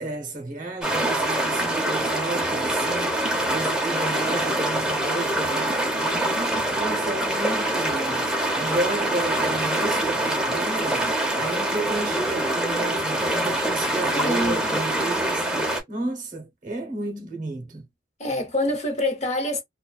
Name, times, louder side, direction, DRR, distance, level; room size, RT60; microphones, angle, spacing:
voice 1, 0.0-6.4 6.7-17.8, right 2 dB, 45° right, 0.9 m, -32 dB
sound 1, 0.8-15.8, right 1 dB, 5° right, 0.7 m, -25 dB
voice 2, 13.9-14.8 18.2-19.6, left 1 dB, 40° left, 0.8 m, -26 dB
2.5 x 2.2 x 2.3 m
head